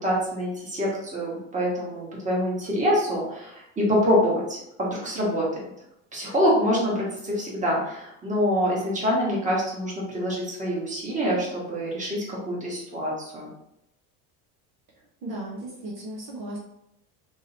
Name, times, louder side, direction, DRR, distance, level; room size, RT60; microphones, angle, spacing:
voice 1, 0.0-5.6 6.1-13.5, equal, 15° right, -4 dB, 1.3 m, -25 dB
voice 2, 15.2-16.6, right 1 dB, 50° right, -3 dB, 1.0 m, -35 dB
3.7 x 3.0 x 2.8 m, 0.79 s
supercardioid pair, 120°, 43 cm